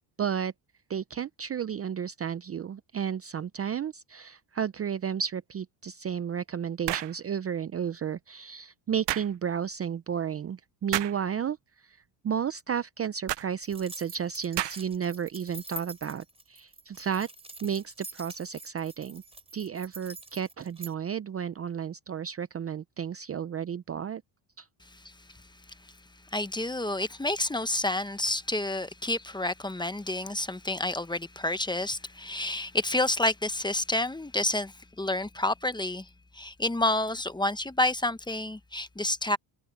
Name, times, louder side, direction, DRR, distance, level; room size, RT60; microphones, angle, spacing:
voice 1, 0.2-0.5 0.9-11.6 11.8-12.0 12.2-17.3 17.6-19.2 19.5-24.2 24.6-24.7, right 8 dB, 30° right, 0.6 m, -32 dB
sound 1, 6.9-7.2 9.1-9.3 10.9-11.2 13.3-13.5 14.6-15.0, right 15 dB, 60° right, 0.8 m, -31 dB
sound 2, 13.6-20.9, right 1 dB, 10° right, 3.9 m, -45 dB
voice 2, 26.3-36.1 36.3-39.4, left 2 dB, 10° left, 0.9 m, -29 dB
cardioid pair, 105°, 49 cm